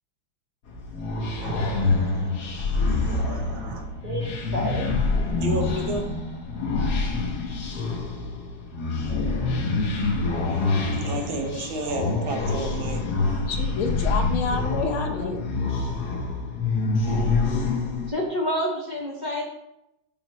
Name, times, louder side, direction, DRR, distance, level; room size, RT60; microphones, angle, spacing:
sound 1, 0.7-18.1, left 3 dB, 55° left, 1.4 m, -26 dB
voice 1, 1.4-3.8 5.4-6.1 10.9-13.0, right 2 dB, 75° right, 3 dB, 1.7 m, -32 dB
voice 2, 4.0-4.9 15.1-15.3 18.1-19.4, equal, 30° right, -2 dB, 0.9 m, -29 dB
voice 3, 13.5-15.5, left 5 dB, 85° left, 3 dB, 1.7 m, -28 dB
7.0 x 6.0 x 3.0 m, 0.87 s
omnidirectional pair, 2.2 m